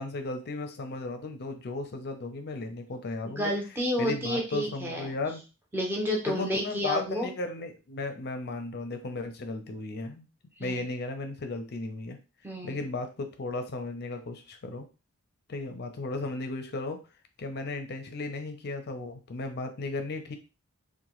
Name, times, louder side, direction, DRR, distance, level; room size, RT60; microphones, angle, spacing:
voice 1, 0.0-3.5 4.0-5.4 6.3-10.3 10.6-12.2 12.6-14.9 15.5-17.0 17.4-20.3, left 3 dB, 50° left, 6 dB, 0.5 m, -35 dB
voice 2, 3.2-5.1 5.7-7.3 10.6-10.8 12.4-12.8, equal, 10° right, -1 dB, 0.7 m, -30 dB
2.8 x 2.2 x 3.0 m, 0.31 s
head